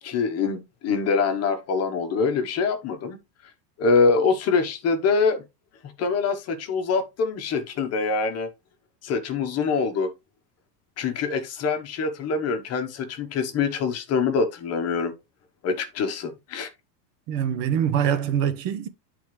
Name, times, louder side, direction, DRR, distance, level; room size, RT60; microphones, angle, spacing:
voice 1, 0.0-3.2 3.8-5.4 5.8-8.5 9.0-10.1 11.0-15.1 15.6-16.7, left 4 dB, 30° left, 1.1 m, -24 dB
voice 2, 17.3-18.9, right 9 dB, 45° right, 1.0 m, -24 dB
10.5 x 3.9 x 3.2 m
supercardioid pair, 145°, 48 cm